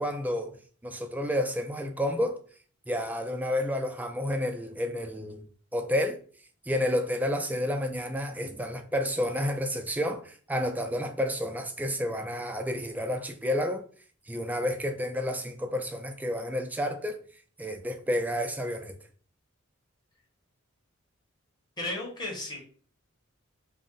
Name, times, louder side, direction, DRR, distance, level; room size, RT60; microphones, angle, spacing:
voice 1, 0.0-2.4 2.9-5.5 5.7-6.2 6.7-13.8 14.3-17.2 17.6-18.9, left 1 dB, 10° right, 0.3 m, -30 dB
voice 2, 21.8-22.6, left 2 dB, 20° left, 1.0 m, -34 dB
2.5 x 2.0 x 3.8 m
head